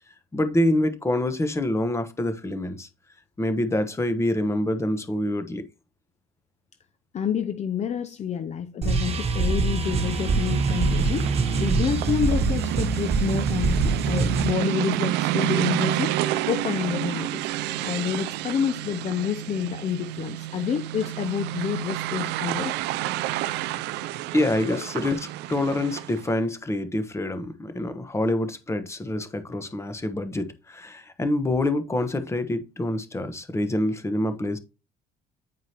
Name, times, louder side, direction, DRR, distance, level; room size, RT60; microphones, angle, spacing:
voice 1, 0.3-2.9 3.4-5.6 24.3-34.6, left 1 dB, 15° left, 1.1 m, -26 dB
voice 2, 7.1-11.3 11.6-16.1 16.5-17.5 17.8-22.8 24.7-24.8, left 8 dB, 40° left, 0.6 m, -28 dB
sound 1, 8.8-14.5, right 3 dB, 40° right, 1.3 m, -24 dB
sound 2, 9.8-26.3, right 15 dB, 85° right, 0.4 m, -29 dB
9.3 x 4.7 x 2.9 m
cardioid pair, 110°, 17 cm